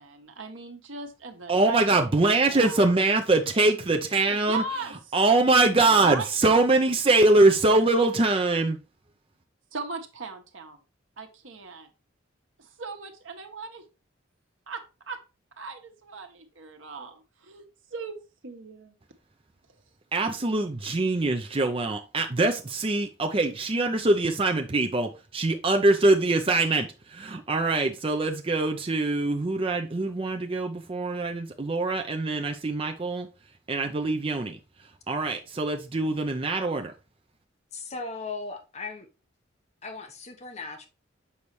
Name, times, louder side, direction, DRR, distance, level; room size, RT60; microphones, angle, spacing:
voice 1, 0.0-2.0 2.2-2.9 4.5-5.2 5.8-6.3 9.7-10.8 11.2-11.9 12.6-13.8 14.7-15.2 15.6-19.0, right 4 dB, 80° right, 1.2 m, -38 dB
voice 2, 1.5-4.6 5.1-8.8 20.1-33.3 33.7-34.6 35.1-36.9, right 2 dB, 30° right, 0.6 m, -23 dB
voice 3, 37.7-39.1 39.8-40.9, left 3 dB, 35° left, 1.0 m, -37 dB
7.0 x 5.5 x 3.1 m
head